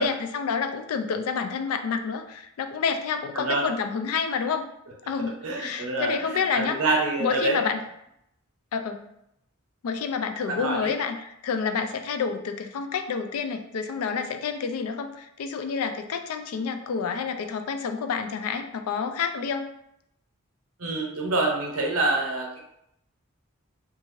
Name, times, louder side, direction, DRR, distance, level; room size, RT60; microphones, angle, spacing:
voice 1, 0.0-4.7 5.1-6.8 7.2-7.8 8.7-9.0 9.8-19.7, left 6 dB, 85° left, 8 dB, 0.3 m, -29 dB
voice 2, 5.4-7.6 10.5-10.9 20.8-22.6, right 2 dB, 85° right, 0 dB, 0.7 m, -26 dB
2.6 x 2.4 x 3.0 m, 0.79 s
head